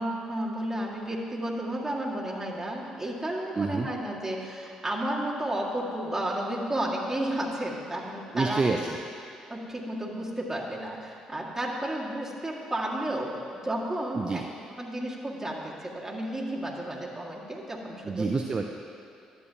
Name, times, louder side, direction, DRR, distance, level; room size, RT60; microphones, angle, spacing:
voice 1, 0.0-8.6 9.5-14.4 14.8-18.3, right 1 dB, 10° right, -4 dB, 2.0 m, -32 dB
voice 2, 3.6-3.9 8.3-9.0 14.1-14.4 18.0-18.6, right 4 dB, 35° right, 3 dB, 0.5 m, -27 dB
12.0 x 8.2 x 2.9 m, 2.5 s
hypercardioid pair, 55°, 2 cm